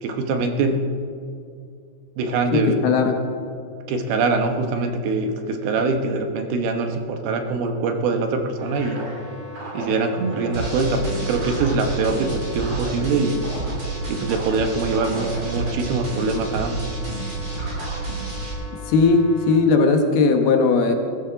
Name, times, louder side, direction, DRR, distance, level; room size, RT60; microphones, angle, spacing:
voice 1, 0.0-0.8 2.2-2.8 3.9-9.0 9.7-13.4 14.1-16.9, right 3 dB, 70° right, 5 dB, 2.8 m, -23 dB
voice 2, 2.5-3.2 18.8-20.9, left 4 dB, 70° left, 4 dB, 3.0 m, -18 dB
sound 1, 8.6-19.5, equal, 55° right, 5.6 m, -36 dB
sound 2, 10.5-18.5, right 3 dB, 25° right, 3.1 m, -30 dB
21.0 x 13.0 x 4.0 m, 2.4 s
omnidirectional pair, 4.9 m